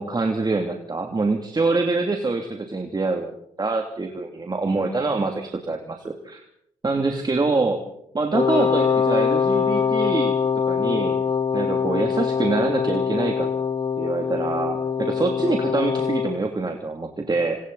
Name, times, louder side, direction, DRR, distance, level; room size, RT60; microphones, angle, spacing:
voice 1, 0.0-6.4 6.8-7.8 8.1-10.4 10.7-11.2 11.5-13.5 14.0-17.6, right 3 dB, 30° right, 3 dB, 2.9 m, -25 dB
Wind instrument woodwind instrument, 8.3-16.4, left 6 dB, 35° left, 2.9 m, -23 dB
28.0 x 26.0 x 4.2 m, 0.75 s
supercardioid pair, 55°, 14 cm